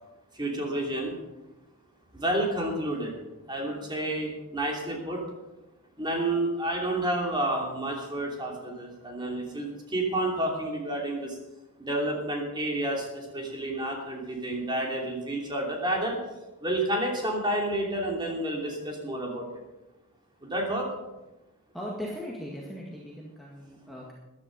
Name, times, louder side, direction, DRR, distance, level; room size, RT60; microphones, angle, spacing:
voice 1, 0.3-1.2 2.1-3.1 3.5-5.2 6.0-11.4 11.8-16.2 16.6-19.6 20.4-20.9, right 1 dB, 20° right, 0 dB, 2.9 m, -30 dB
voice 2, 21.7-24.1, equal, ahead, -4 dB, 1.8 m, -38 dB
14.5 x 11.0 x 5.3 m, 1.0 s
head